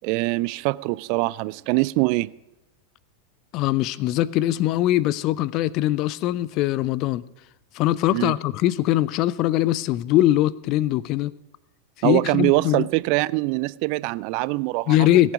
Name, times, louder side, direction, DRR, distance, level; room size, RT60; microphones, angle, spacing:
voice 1, 0.0-2.3 8.1-8.3 12.0-15.1, right 22 dB, 45° right, 0.4 m, -23 dB
voice 2, 3.5-7.2 7.7-11.3 12.0-12.9 14.9-15.3, left 14 dB, 40° left, 0.5 m, -21 dB
18.0 x 8.6 x 5.0 m
figure-of-eight pair, 90°, 0 cm